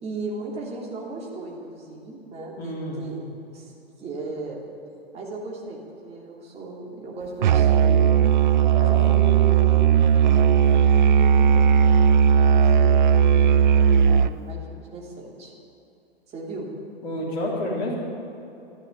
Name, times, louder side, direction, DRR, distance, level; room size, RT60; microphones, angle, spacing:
voice 1, 0.0-3.2 3.5-3.7 4.0-4.6 5.1-8.2 8.9-10.0 10.5-11.7 12.5-15.5 16.3-16.7, right 2 dB, 20° right, -2 dB, 3.0 m, -36 dB
voice 2, 2.6-3.3 8.7-9.1 17.0-18.0, left 1 dB, 40° left, -4 dB, 3.8 m, -30 dB
Musical instrument, 7.4-14.4, right 8 dB, 50° right, 0.5 m, -17 dB
13.0 x 12.0 x 8.5 m, 2.8 s
figure-of-eight pair, 110°, 31 cm